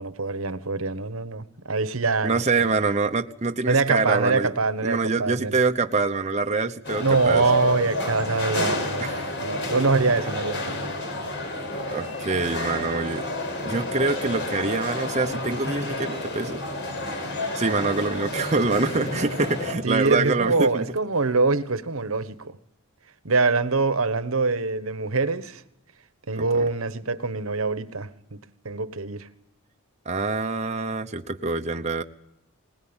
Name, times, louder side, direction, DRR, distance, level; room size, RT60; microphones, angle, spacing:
voice 1, 0.0-2.4 3.7-5.6 7.0-11.0 19.8-22.6 23.2-25.6 26.3-28.4 28.6-29.3, right 3 dB, 75° right, 1.3 m, -24 dB
voice 2, 2.2-4.5 4.8-7.4 9.0-9.1 11.9-13.2 13.6-16.6 17.5-20.8 26.4-26.5 30.1-32.0, right 3 dB, 30° right, 0.9 m, -25 dB
sound 1, 6.8-19.7, left 1 dB, 55° left, 5.5 m, -30 dB
20.5 x 20.0 x 8.9 m
head